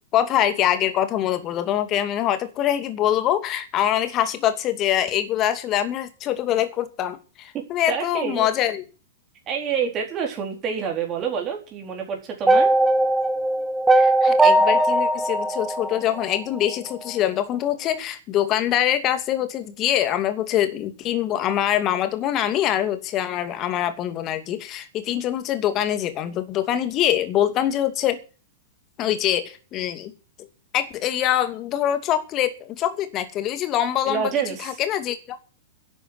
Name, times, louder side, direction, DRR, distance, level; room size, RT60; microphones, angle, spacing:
voice 1, 0.1-8.9 13.9-28.2 29.0-30.1 30.7-34.3 34.6-35.4, left 11 dB, 35° left, 2.5 m, -24 dB
voice 2, 7.9-8.5 9.5-12.7 34.1-34.8, right 7 dB, 30° right, 4.1 m, -27 dB
sound 1, 12.5-16.6, right 2 dB, 10° right, 1.7 m, -19 dB
11.5 x 8.3 x 9.7 m
hypercardioid pair, 105°, 0 cm